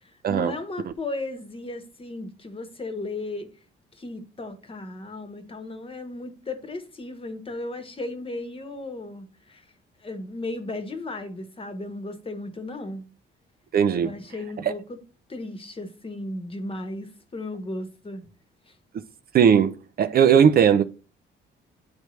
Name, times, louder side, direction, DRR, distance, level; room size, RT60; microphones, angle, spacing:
voice 1, 0.0-3.5 4.0-9.7 10.0-13.1 14.0-15.0 15.3-18.2 18.7-18.8, left 2 dB, 25° left, 1.1 m, -35 dB
voice 2, 13.7-14.1 14.6-14.7 19.3-20.8, right 8 dB, 50° right, 0.5 m, -18 dB
9.2 x 3.4 x 3.1 m
cardioid pair, 90°, 20 cm